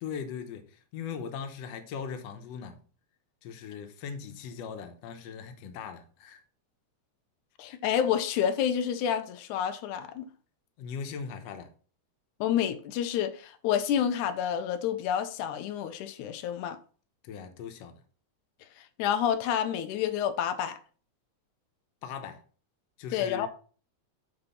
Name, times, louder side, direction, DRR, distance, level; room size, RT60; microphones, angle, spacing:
voice 1, 0.0-2.8 3.4-6.4 10.8-11.7 17.2-18.0 22.0-22.4 23.0-23.5, left 6 dB, 65° left, 2.0 m, -39 dB
voice 2, 7.6-10.3 12.4-16.8 19.0-20.8 23.1-23.5, left 9 dB, 90° left, 2.2 m, -29 dB
9.3 x 3.9 x 5.6 m
omnidirectional pair, 3.4 m